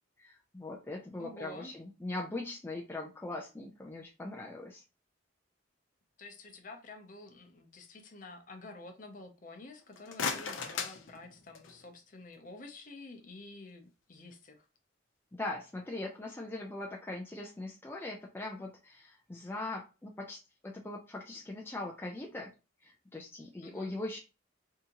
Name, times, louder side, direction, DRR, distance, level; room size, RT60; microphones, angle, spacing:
voice 1, 0.2-4.8 15.4-22.5 22.8-24.2, left 2 dB, 10° left, -1 dB, 0.4 m, -41 dB
voice 2, 1.2-1.7 6.2-14.7 23.6-24.0, left 2 dB, 40° left, 5 dB, 0.7 m, -49 dB
sound 1, 9.8-11.9, left 5 dB, 85° left, 0.6 m, -38 dB
3.6 x 2.7 x 2.9 m, 0.30 s
head